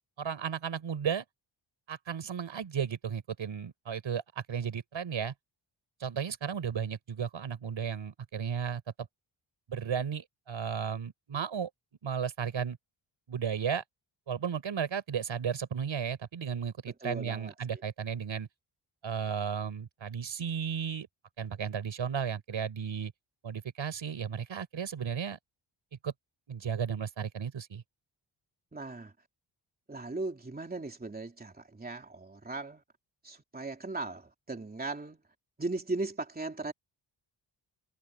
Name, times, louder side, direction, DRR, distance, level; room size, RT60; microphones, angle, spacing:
voice 1, 0.2-1.2 1.9-5.3 6.0-8.8 9.7-11.7 12.0-12.8 13.3-13.8 14.3-18.5 19.0-21.1 21.4-23.1 23.4-25.4 26.0-26.1 26.5-27.8, right 7 dB, 70° right, 5.2 m, -34 dB
voice 2, 17.0-17.5 28.7-29.1 29.9-32.8 33.2-35.2 35.6-36.7, right 3 dB, 20° right, 3.1 m, -37 dB
wide cardioid pair, 160°, 47 cm